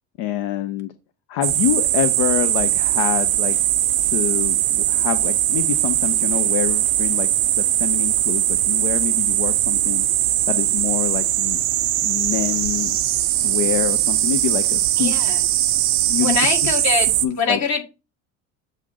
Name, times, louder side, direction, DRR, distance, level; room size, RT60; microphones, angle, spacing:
voice 1, 0.2-0.9 1.3-3.6 4.0-7.3 7.6-10.1 10.5-11.6 12.0-13.0 13.3-15.1 16.1-16.4 17.2-17.6, left 12 dB, 55° left, 10 dB, 0.7 m, -26 dB
sound 1, 1.4-17.3, right 13 dB, 80° right, 0.6 m, -20 dB
voice 2, 15.0-15.4 16.2-17.1 17.4-17.8, left 5 dB, 40° left, 4 dB, 1.7 m, -23 dB
7.3 x 2.6 x 5.7 m, 0.29 s
figure-of-eight pair, 60°, 42 cm